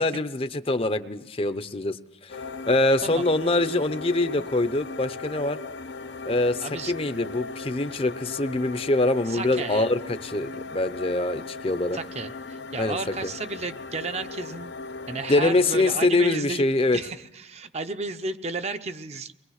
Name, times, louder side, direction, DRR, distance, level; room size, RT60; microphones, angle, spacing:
voice 1, 0.0-2.0 2.2-2.3 2.7-5.6 6.2-12.0 12.8-13.0 13.2-13.3 15.3-17.0, left 2 dB, 30° left, 12 dB, 0.7 m, -24 dB
sound 1, 2.3-16.1, left 3 dB, 75° left, 0.9 m, -38 dB
voice 2, 3.0-3.3 6.6-6.9 9.3-9.9 11.9-14.7 15.1-16.7 16.9-19.3, right 3 dB, 35° right, 9 dB, 0.8 m, -33 dB
23.5 x 21.0 x 6.5 m, 0.94 s
head